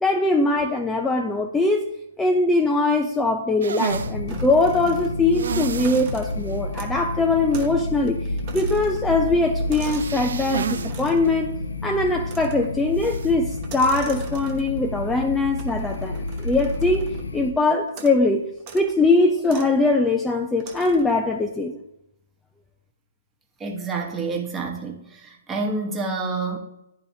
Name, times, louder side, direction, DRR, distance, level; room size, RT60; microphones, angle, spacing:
voice 1, 0.0-1.9 2.2-8.2 8.5-11.5 11.8-18.4 18.7-21.8, left 2 dB, 10° left, 3 dB, 0.4 m, -21 dB
sound 1, 3.6-4.1 5.3-6.1 6.5-6.6 7.0-7.1 9.7-10.9 11.2-11.3 13.0-13.3, right 7 dB, 65° right, 0.3 m, -30 dB
sound 2, 3.9-17.5, left 2 dB, 75° left, 0.5 m, -30 dB
sound 3, 4.3-5.4 5.7-7.1 7.5-7.8 8.1-10.2 10.9-11.3 12.2-12.8 13.6-14.9 15.6-17.3 17.9-18.2 18.6-18.9 19.4-19.8 20.6-21.2, right 5 dB, 35° right, 1.0 m, -42 dB
voice 2, 23.6-26.6, right 3 dB, 15° right, 0 dB, 1.2 m, -28 dB
11.0 x 4.0 x 2.7 m, 0.84 s
figure-of-eight pair, 125°, 0 cm